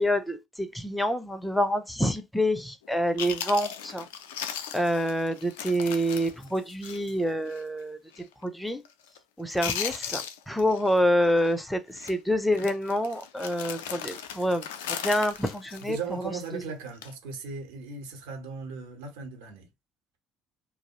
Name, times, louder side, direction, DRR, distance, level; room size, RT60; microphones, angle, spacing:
voice 1, 0.0-4.1 4.7-8.8 9.4-16.3, equal, 5° left, 0.5 m, -27 dB
Chewing mastication, 2.8-2.9 3.2-7.2 7.5-7.6 8.1-8.4 8.7-9.2 9.5-11.0 11.2-11.5 12.0-12.1 12.5-16.5 16.9-17.1, left 9 dB, 70° left, 0.3 m, -37 dB
voice 2, 15.8-19.7, right 5 dB, 70° right, 0.8 m, -37 dB
2.3 x 2.0 x 2.9 m
figure-of-eight pair, 55°, 0 cm